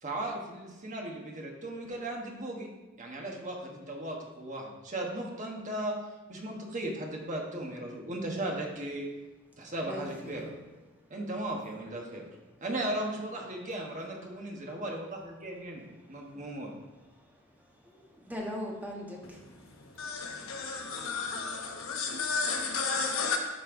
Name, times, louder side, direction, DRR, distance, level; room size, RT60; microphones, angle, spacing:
voice 1, 0.0-2.7 3.0-6.0 6.3-9.0 9.6-10.5 11.1-12.3 12.6-15.8 16.1-16.7, right 1 dB, 35° right, 0 dB, 1.2 m, -36 dB
voice 2, 9.8-10.6 16.1-16.3 17.1-21.1, left 1 dB, 10° right, -3 dB, 1.3 m, -43 dB
voice 3, 20.0-23.4, left 4 dB, 70° left, 3 dB, 1.0 m, -32 dB
12.0 x 4.3 x 3.8 m, 1.1 s
head